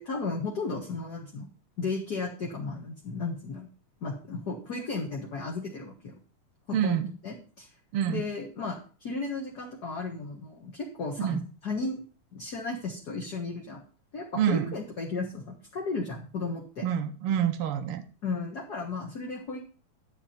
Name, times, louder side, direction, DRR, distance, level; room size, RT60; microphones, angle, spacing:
voice 1, 0.0-1.5 1.8-3.7 4.0-6.1 6.7-7.7 8.1-12.0 12.3-13.8 14.1-16.8 18.2-19.6, left 3 dB, 40° left, -1 dB, 1.5 m, -34 dB
voice 2, 6.7-7.1 7.9-8.2 11.2-11.4 14.4-14.7 16.8-18.0, right 9 dB, 85° right, 6 dB, 1.2 m, -27 dB
11.0 x 8.1 x 4.3 m, 0.39 s
omnidirectional pair, 3.7 m